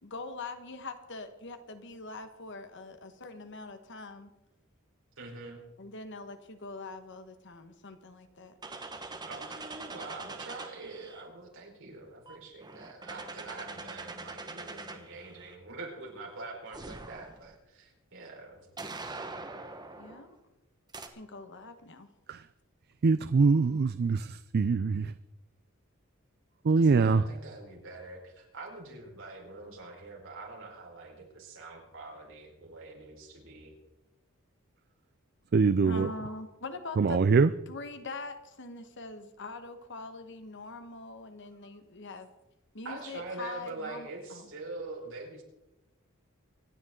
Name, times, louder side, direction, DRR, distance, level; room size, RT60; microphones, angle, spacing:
voice 1, 0.0-4.3 5.8-8.5 20.0-20.3 21.1-22.1 35.8-37.2 37.7-42.3 42.7-44.5, left 3 dB, 60° left, 8 dB, 1.4 m, -43 dB
voice 2, 5.2-5.7 9.2-18.7 26.8-33.7 42.8-45.4, right 3 dB, 65° right, -1 dB, 4.7 m, -44 dB
sound 1, 8.6-11.3 12.3-15.6 16.7-17.6 18.8-20.3 20.9-21.1, right 3 dB, 20° right, 1.3 m, -43 dB
voice 3, 23.0-25.1 26.6-27.2 35.5-36.1 37.0-37.5, right 4 dB, 50° right, 14 dB, 0.4 m, -23 dB
25.5 x 10.5 x 3.8 m, 0.94 s
head